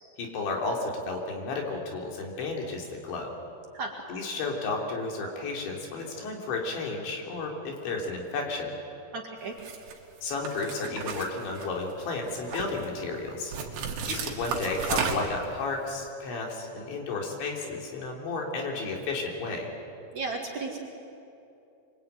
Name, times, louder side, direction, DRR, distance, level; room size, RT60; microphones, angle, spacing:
voice 1, 0.2-3.3 4.1-8.8 10.2-13.5 14.1-19.7, left 3 dB, 70° left, 1 dB, 5.6 m, -32 dB
voice 2, 9.1-9.5 20.1-20.8, right 3 dB, 50° right, 0 dB, 2.9 m, -34 dB
sound 1, 9.6-9.9 10.5-11.9 12.3-12.9 13.5-15.5, right 6 dB, 70° right, 4.4 m, -33 dB
25.0 x 24.5 x 9.3 m, 2.7 s
omnidirectional pair, 5.4 m